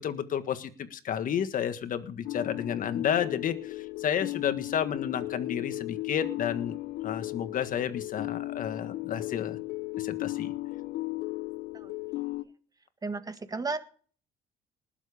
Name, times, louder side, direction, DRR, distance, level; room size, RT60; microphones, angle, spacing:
voice 1, 0.0-6.8 7.0-9.6 10.0-10.5, left 8 dB, 55° left, 10 dB, 1.7 m, -31 dB
sound 1, 2.2-12.4, left 19 dB, 80° left, 1.0 m, -36 dB
voice 2, 13.0-13.8, right 3 dB, 20° right, 10 dB, 1.6 m, -33 dB
19.5 x 7.5 x 5.1 m, 0.42 s
cardioid pair, 110°, 17 cm